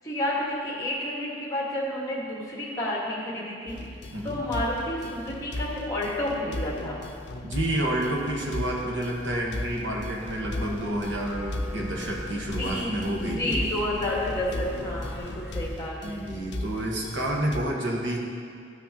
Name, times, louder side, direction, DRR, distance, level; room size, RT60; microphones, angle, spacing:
voice 1, 0.0-3.8 4.2-7.0 12.6-16.2, left 1 dB, 20° left, -4 dB, 1.6 m, -30 dB
sound 1, 3.7-17.6, left 1 dB, 65° left, 0.5 m, -37 dB
voice 2, 7.4-13.6 16.0-18.2, right 1 dB, 85° right, -2 dB, 1.3 m, -29 dB
sound 2, 9.9-15.8, left 1 dB, 5° right, 0.6 m, -39 dB
13.0 x 6.1 x 2.9 m, 2.3 s
head